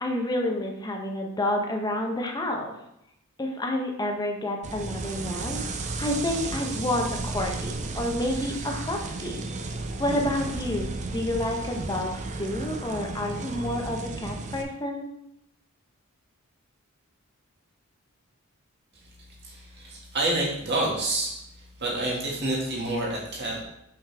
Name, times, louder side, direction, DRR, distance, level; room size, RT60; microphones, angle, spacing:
voice 1, 0.0-2.7 3.4-5.6 6.0-9.5 10.0-15.1, left 1 dB, 20° left, 2 dB, 0.8 m, -29 dB
sound 1, 4.6-14.6, right 3 dB, 30° right, 0.5 m, -34 dB
voice 2, 19.4-21.3 21.8-23.6, right 2 dB, 50° right, -4 dB, 1.8 m, -28 dB
5.8 x 5.1 x 3.4 m, 0.80 s
head